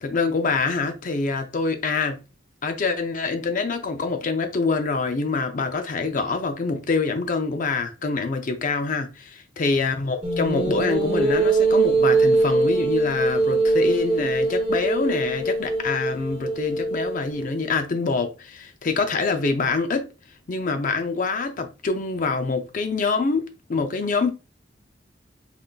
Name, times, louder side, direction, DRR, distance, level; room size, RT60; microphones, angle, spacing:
voice 1, 0.0-2.2 2.6-20.1 20.5-24.3, left 4 dB, 45° left, 0.5 m, -25 dB
sound 1, 10.2-17.6, right 3 dB, 30° right, 0.9 m, -22 dB
3.8 x 3.4 x 2.3 m
head